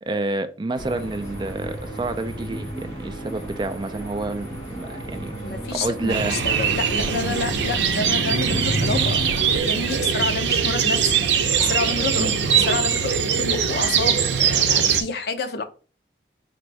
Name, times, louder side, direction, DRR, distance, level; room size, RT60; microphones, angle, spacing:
voice 1, 0.0-5.3 5.7-6.4 12.2-12.3, right 2 dB, 25° right, 0.3 m, -29 dB
sound 1, 0.7-9.6, right 1 dB, 15° left, 1.5 m, -33 dB
voice 2, 5.4-11.3 11.6-15.6, left 3 dB, 60° left, 0.6 m, -29 dB
sound 2, 6.1-15.0, right 7 dB, 75° right, 0.6 m, -21 dB
4.4 x 2.6 x 3.2 m
head